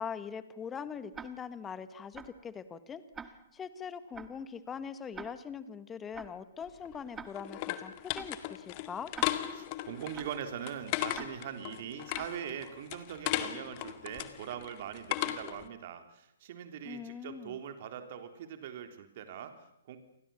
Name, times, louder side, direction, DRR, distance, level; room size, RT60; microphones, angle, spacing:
voice 1, 0.0-9.1 16.8-17.6, left 7 dB, 15° left, 13 dB, 1.7 m, -42 dB
Tick-tock, 1.1-1.6 2.1-2.5 3.1-3.6 4.1-4.5 5.1-5.6 6.1-6.5 7.1-7.6 8.1-8.5 9.1-9.6 10.1-10.5 11.1-11.6 12.1-12.5, right 6 dB, 10° right, 1.8 m, -48 dB
sound 1, 6.7-15.7, left 15 dB, 35° left, 2.0 m, -37 dB
voice 2, 9.5-20.0, right 9 dB, 45° right, 7 dB, 3.6 m, -42 dB
30.0 x 24.0 x 7.2 m, 0.76 s
figure-of-eight pair, 130°, 0 cm